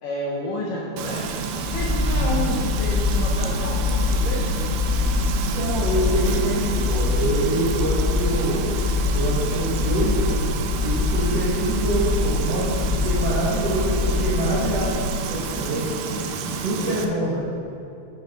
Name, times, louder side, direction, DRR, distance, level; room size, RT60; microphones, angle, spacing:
voice 1, 0.0-4.5 14.1-14.9 16.8-17.1, left 2 dB, 70° left, -4 dB, 2.1 m, -31 dB
Frying (food), 1.0-17.1, right 5 dB, 85° right, 2.1 m, -30 dB
sound 1, 1.5-14.9, left 3 dB, 10° right, 0.5 m, -24 dB
voice 2, 5.3-8.6 9.1-10.1 10.8-14.9 15.2-15.8 16.6-17.5, right 1 dB, 60° right, -8 dB, 1.6 m, -25 dB
8.9 x 8.2 x 5.8 m, 3.0 s
omnidirectional pair, 5.2 m